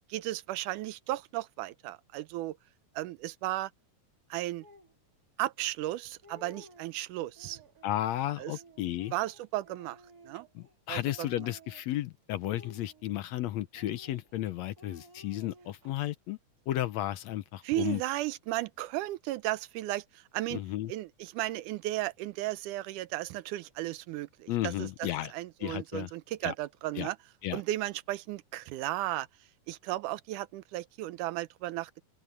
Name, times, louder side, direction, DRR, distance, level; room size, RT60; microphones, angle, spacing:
voice 1, 0.1-2.6 3.0-3.7 4.3-4.6 5.4-7.6 8.4-8.5 9.1-10.0 10.2-10.5 10.9-11.5 17.6-20.6 20.9-27.2 27.5-29.3 29.7-32.0, right 16 dB, 90° right, 2.2 m, -35 dB
Speech, 4.6-4.9 5.6-5.7 6.1-7.0 7.3-8.0 8.5-10.8 11.0-12.0 12.5-13.4 13.8-14.4 14.8-15.9, equal, 30° right, 2.7 m, -55 dB
voice 2, 7.8-9.1 10.6-16.4 16.7-18.0 20.5-20.9 24.5-25.3 25.6-26.1 26.4-26.5 27.0-27.1 27.4-27.6, left 14 dB, 75° left, 1.8 m, -33 dB
open air
omnidirectional pair, 3.5 m